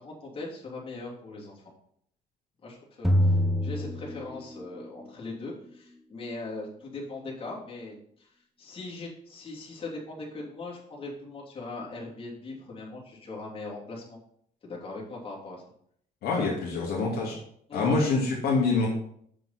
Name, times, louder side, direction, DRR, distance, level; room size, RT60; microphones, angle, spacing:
voice 1, 0.0-1.5 2.6-14.2 14.6-15.6 17.7-18.0, left 2 dB, 30° left, -4 dB, 3.0 m, -40 dB
sound 1, 3.0-4.8, left 1 dB, ahead, 0.8 m, -25 dB
voice 2, 16.2-17.4 17.7-18.9, left 3 dB, 70° left, -3 dB, 2.3 m, -25 dB
7.5 x 6.4 x 4.3 m, 0.65 s
cardioid pair, 110°, 17 cm